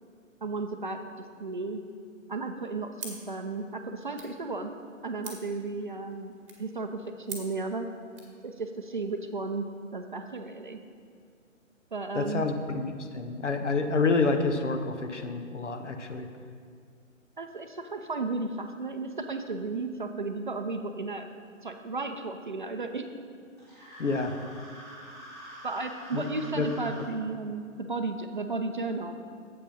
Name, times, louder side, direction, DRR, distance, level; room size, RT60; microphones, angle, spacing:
voice 1, 0.4-1.0 1.4-1.8 2.3-4.7 5.0-6.3 6.6-7.9 8.4-9.7 9.9-10.8 11.9-12.5 17.4-21.3 21.6-23.1 25.6-29.1, right 3 dB, 40° right, 6 dB, 0.5 m, -34 dB
sound 1, 3.0-8.4, right 5 dB, 20° right, 1.3 m, -47 dB
voice 2, 12.1-12.8 13.1-16.3 24.0-24.3 26.1-26.2 26.6-26.7, left 3 dB, 60° left, 6 dB, 1.1 m, -28 dB
sound 2, 23.6-27.1, equal, 5° left, 1.4 m, -46 dB
8.0 x 7.6 x 5.7 m, 2.2 s
figure-of-eight pair, 140°, 40 cm